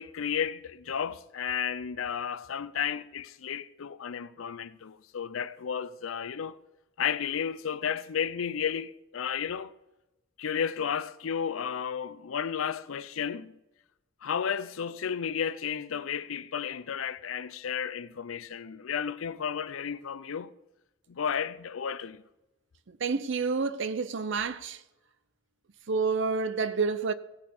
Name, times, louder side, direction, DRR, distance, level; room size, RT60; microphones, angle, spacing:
voice 1, 0.0-6.6 7.0-9.7 10.4-13.5 14.2-20.5 21.1-22.2, left 7 dB, 85° left, 0.5 m, -33 dB
voice 2, 23.0-24.8 25.9-27.1, right 4 dB, 65° right, 0.6 m, -28 dB
16.5 x 6.5 x 5.4 m
head